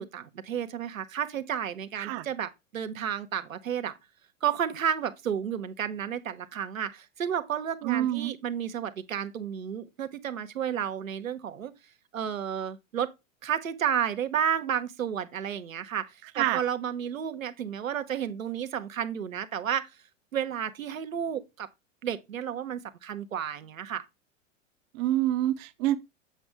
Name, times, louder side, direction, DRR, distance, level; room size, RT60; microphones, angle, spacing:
voice 1, 0.0-3.9 4.4-11.7 12.1-13.1 13.4-19.9 20.3-21.7 22.0-24.1, right 8 dB, 85° right, 1.0 m, -32 dB
voice 2, 7.8-8.3 16.4-16.6 24.9-26.0, right 14 dB, 40° right, 0.7 m, -27 dB
7.9 x 6.2 x 3.3 m
hypercardioid pair, 105°, 39 cm